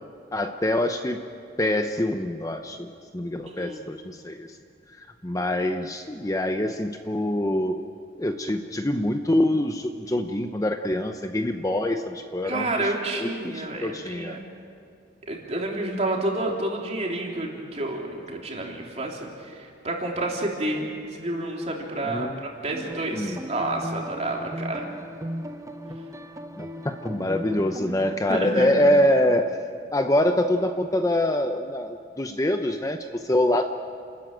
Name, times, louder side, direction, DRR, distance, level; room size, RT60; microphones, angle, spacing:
voice 1, 0.3-1.2 1.6-2.9 3.1-4.5 5.0-7.8 8.2-14.4 22.0-22.4 23.1-23.4 26.6-29.6 29.9-33.6, left 1 dB, 20° left, 6 dB, 0.7 m, -25 dB
voice 2, 3.5-3.8 12.4-14.4 15.3-22.3 22.6-24.9 28.3-28.9, right 2 dB, 35° right, -1 dB, 3.5 m, -29 dB
sound 1, 22.7-28.2, equal, 15° right, 1.0 m, -37 dB
29.5 x 14.0 x 9.1 m, 2.4 s
head